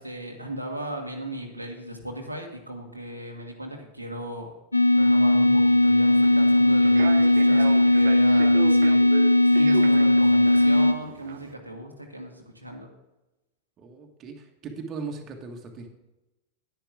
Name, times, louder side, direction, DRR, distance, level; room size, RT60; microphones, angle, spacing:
voice 1, 0.0-4.5 4.9-9.0 9.4-12.9, equal, 85° right, 1 dB, 1.5 m, -36 dB
sound 1, 4.7-10.9, left 1 dB, 85° left, 0.5 m, -18 dB
Human voice / Subway metro underground, 6.1-11.5, right 11 dB, 55° right, 0.6 m, -36 dB
voice 2, 13.8-15.9, right 4 dB, 30° right, 3 dB, 1.6 m, -38 dB
10.5 x 9.9 x 3.7 m, 0.99 s
figure-of-eight pair, 90°, 0 cm